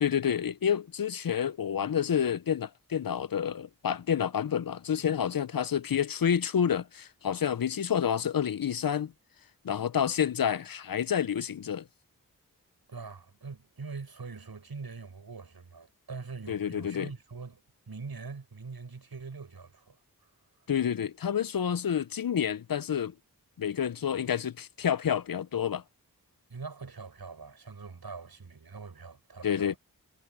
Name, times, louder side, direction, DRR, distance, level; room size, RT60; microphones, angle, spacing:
voice 1, 0.0-9.1 9.6-11.8 16.5-17.1 20.7-23.1 23.6-25.8 29.4-29.7, left 8 dB, 65° left, 0.7 m, -29 dB
voice 2, 12.9-17.6 17.9-20.0 20.2-20.3 26.5-29.8, right 4 dB, 80° right, 7.1 m, -43 dB
cardioid pair, 40°, 37 cm